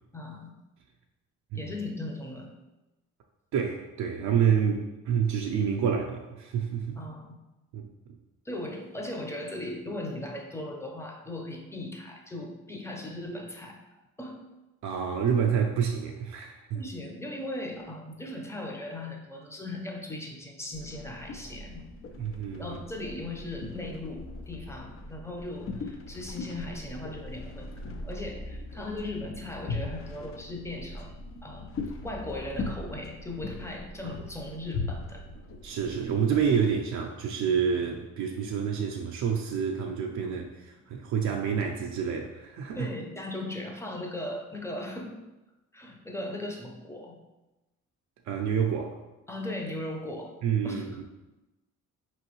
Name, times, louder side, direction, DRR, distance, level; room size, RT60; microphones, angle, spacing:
voice 1, 0.1-0.5 1.5-2.5 6.9-7.3 8.4-13.8 14.2-14.4 16.7-21.8 22.6-31.7 32.0-35.2 40.2-40.3 42.7-45.2 45.7-47.1 49.3-50.3 50.6-50.9, left 1 dB, 10° left, 1 dB, 0.7 m, -38 dB
voice 2, 3.5-7.0 7.7-7.9 14.8-16.8 22.2-22.8 34.0-34.1 35.6-42.9 48.3-49.0 50.4-51.0, right 7 dB, 70° right, 1 dB, 0.5 m, -28 dB
sound 1, 20.7-36.7, left 3 dB, 45° left, 0.5 m, -40 dB
4.4 x 3.1 x 3.0 m, 1.0 s
cardioid pair, 90°, 30 cm